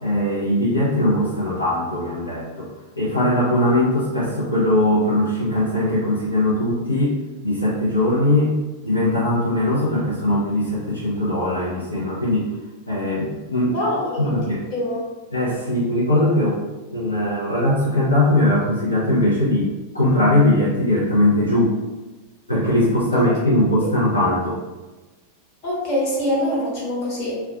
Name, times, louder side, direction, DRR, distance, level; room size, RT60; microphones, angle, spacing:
voice 1, 0.0-2.7 3.0-7.2 7.4-8.5 8.8-12.5 12.9-13.7 14.2-14.6 15.3-16.6 16.9-21.8 22.5-24.6, left 1 dB, 85° left, -7 dB, 0.5 m, -20 dB
voice 2, 13.7-15.0 23.1-23.3 25.6-27.4, left 1 dB, 40° left, -5 dB, 0.9 m, -24 dB
2.4 x 2.2 x 2.3 m, 1.2 s
figure-of-eight pair, 90°, 0 cm